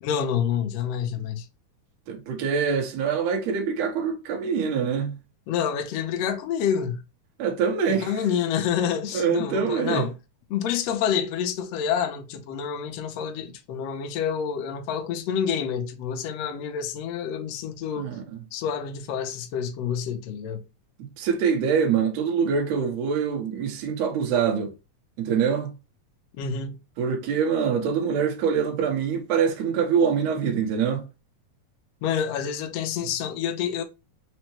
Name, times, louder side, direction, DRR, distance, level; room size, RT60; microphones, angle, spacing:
voice 1, 0.0-1.4 5.5-7.0 7.9-10.1 10.5-18.1 18.5-20.6 26.4-26.7 32.0-33.8, left 8 dB, 90° left, 1.4 m, -28 dB
voice 2, 2.1-5.2 7.4-8.1 9.1-10.1 18.0-18.4 21.0-24.7 25.2-25.7 27.0-31.1, right 6 dB, 70° right, 1.8 m, -24 dB
5.4 x 2.1 x 3.0 m
omnidirectional pair, 3.8 m